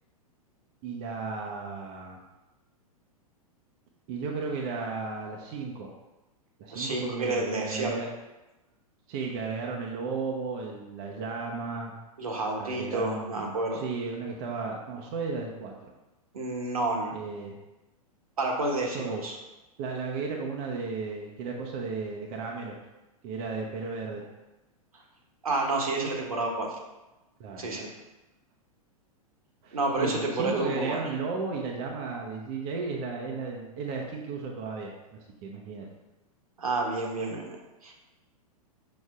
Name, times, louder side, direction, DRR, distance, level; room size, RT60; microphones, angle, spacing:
voice 1, 0.8-2.2 4.1-5.9 6.6-8.1 9.1-11.9 12.6-15.7 17.1-17.6 18.9-19.2 19.8-22.8 23.2-24.2 27.4-27.9 29.6-34.9 35.4-35.9, right 4 dB, 40° right, 0 dB, 0.8 m, -34 dB
voice 2, 6.7-8.0 12.2-13.8 16.3-17.1 18.4-19.4 25.4-26.8 27.6-27.9 29.7-31.0 36.6-37.6 37.8-37.9, right 2 dB, 70° right, 0 dB, 1.3 m, -29 dB
6.7 x 6.1 x 2.4 m, 1.0 s
figure-of-eight pair, 100°, 20 cm